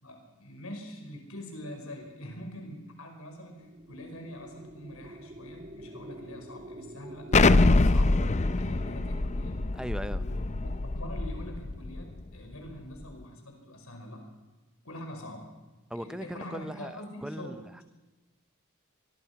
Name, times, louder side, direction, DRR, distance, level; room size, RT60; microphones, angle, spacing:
voice 1, 0.0-8.2 8.6-9.7 10.1-14.3 14.8-15.5 15.9-17.8, left 1 dB, 75° left, 3 dB, 5.3 m, -44 dB
sound 1, 3.4-11.9, right 1 dB, 35° right, 1.6 m, -48 dB
Explosion, 7.3-12.0, left 2 dB, 30° left, 0.6 m, -24 dB
voice 2, 9.7-10.2 15.9-17.7, equal, 5° right, 12 dB, 0.7 m, -38 dB
24.0 x 21.5 x 5.9 m, 1.2 s
head